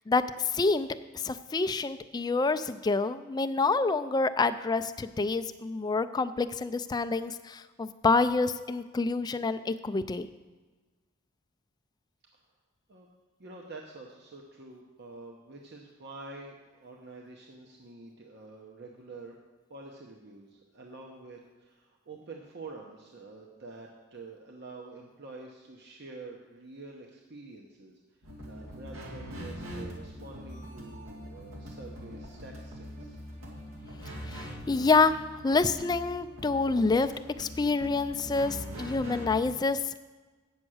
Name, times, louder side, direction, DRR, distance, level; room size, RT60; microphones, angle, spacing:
voice 1, 0.1-0.9 1.1-10.3 34.3-37.1 37.4-39.9, left 3 dB, 20° left, 10 dB, 0.3 m, -27 dB
voice 2, 13.4-19.3 19.7-28.0 28.5-33.2, right 3 dB, 55° right, 0 dB, 0.9 m, -47 dB
sound 1, 28.2-39.5, equal, 90° right, 2.2 m, -42 dB
8.8 x 7.1 x 6.3 m, 1.3 s
head